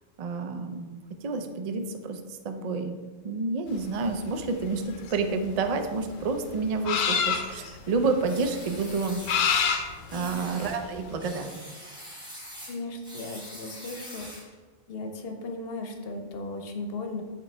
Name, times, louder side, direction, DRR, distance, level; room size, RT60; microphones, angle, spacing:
voice 1, 0.2-3.0 3.2-9.2 9.5-9.8 10.1-11.7, right 4 dB, 85° right, 6 dB, 0.3 m, -29 dB
sound 1, 3.8-11.1, left 7 dB, 85° left, 1.0 m, -29 dB
sound 2, 8.2-9.7 10.1-10.8 11.2-14.5, equal, 5° right, 1.1 m, -44 dB
voice 2, 12.7-14.3 14.9-17.2, left 2 dB, 55° left, 4 dB, 0.9 m, -36 dB
8.2 x 3.7 x 3.2 m, 1.4 s
omnidirectional pair, 1.3 m